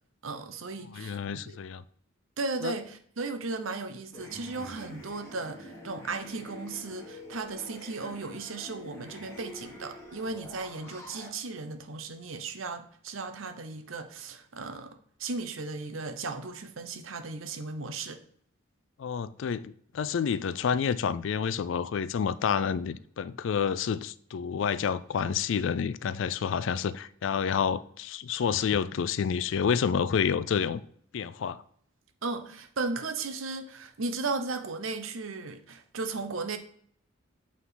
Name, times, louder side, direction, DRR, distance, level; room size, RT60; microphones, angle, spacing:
voice 1, 0.2-1.6 2.4-18.2 32.2-36.6, right 3 dB, 85° right, 0.8 m, -36 dB
voice 2, 1.0-1.8 2.6-2.7 19.0-30.8 31.1-31.6, left 7 dB, 65° left, 0.3 m, -29 dB
sound 1, 4.1-11.3, left 1 dB, 15° left, 1.5 m, -46 dB
8.3 x 3.7 x 3.9 m
head